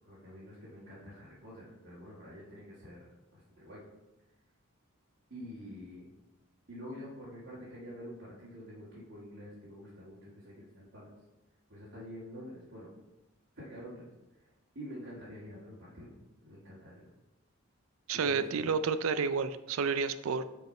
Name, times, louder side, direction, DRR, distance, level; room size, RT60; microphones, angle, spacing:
voice 1, 0.0-3.0 3.3-3.8 5.3-6.1 6.7-11.1 11.7-12.9 13.6-14.1 14.4-14.5 14.8-16.1 16.4-17.1 18.1-18.7, equal, 60° right, -10 dB, 1.8 m, -47 dB
voice 2, 18.1-20.4, right 5 dB, 80° right, 13 dB, 0.4 m, -30 dB
6.1 x 4.8 x 4.3 m, 0.99 s
head